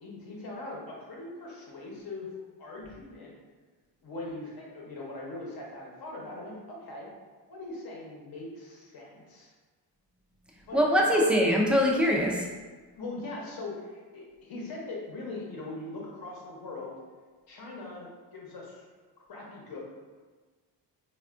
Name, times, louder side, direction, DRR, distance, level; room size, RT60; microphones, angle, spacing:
voice 1, 0.0-2.3 2.6-3.4 4.0-7.1 7.5-9.5 10.7-11.2 13.0-16.9 17.5-18.9 19.3-19.8, left 2 dB, 55° left, -3 dB, 0.9 m, -41 dB
voice 2, 10.7-12.5, equal, 5° right, -2 dB, 0.4 m, -23 dB
3.3 x 2.4 x 2.4 m, 1.4 s
cardioid pair, 85°, 42 cm